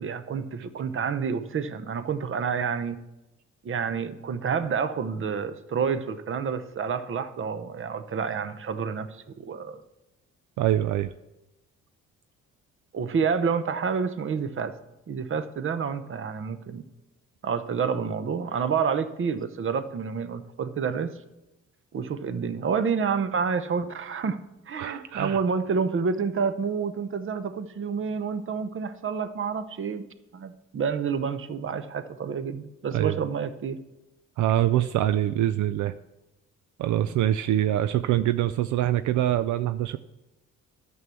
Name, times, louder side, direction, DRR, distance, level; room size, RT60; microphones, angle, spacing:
voice 1, 0.0-3.0 3.6-9.8 12.9-14.7 15.1-16.8 17.4-21.1 21.9-24.4 24.7-30.0 30.3-33.8, right 6 dB, 45° right, 11 dB, 0.8 m, -29 dB
voice 2, 10.6-11.1 24.8-25.4 32.9-33.2 34.4-35.9 36.8-40.0, right 12 dB, 75° right, 12 dB, 0.5 m, -24 dB
11.0 x 6.2 x 7.0 m, 0.96 s
cardioid pair, 90°, 30 cm